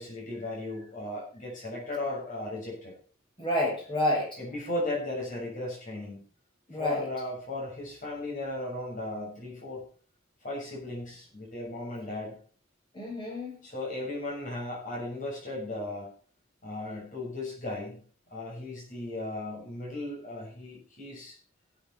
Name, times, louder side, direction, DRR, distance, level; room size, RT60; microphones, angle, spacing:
voice 1, 0.0-2.9 4.4-6.2 6.7-9.8 10.4-12.4 13.6-16.1 16.6-18.0 18.3-21.4, left 2 dB, 40° left, -4 dB, 6.9 m, -36 dB
voice 2, 3.4-4.4 6.7-7.1 12.9-13.7, left 1 dB, 25° left, -2 dB, 6.4 m, -29 dB
17.5 x 8.0 x 4.3 m, 0.42 s
head